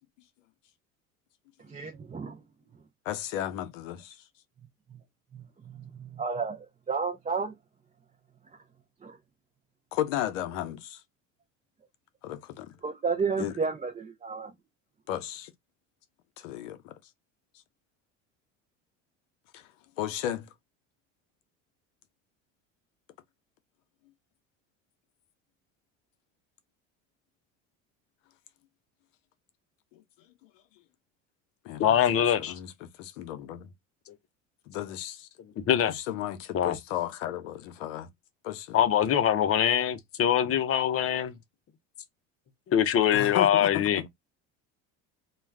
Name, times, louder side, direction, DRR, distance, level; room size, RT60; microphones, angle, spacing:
voice 1, 1.7-2.4 4.9-5.0 5.3-7.5 9.0-9.2 12.8-14.5, right 5 dB, 20° right, 0.6 m, -32 dB
voice 2, 3.1-4.2 9.9-11.0 12.2-12.7 13.4-13.5 15.1-15.5 16.4-16.9 19.5-19.7 20.0-20.5 29.9-30.0 31.6-32.0 32.4-33.7 34.7-35.3 35.9-38.1 38.4-38.8 43.1-43.8, left 12 dB, 85° left, 0.7 m, -34 dB
voice 3, 31.8-32.5 35.7-35.9 36.5-36.7 38.7-41.3 42.7-44.1, left 9 dB, 40° left, 0.6 m, -23 dB
2.3 x 2.3 x 3.3 m
supercardioid pair, 85°, 37 cm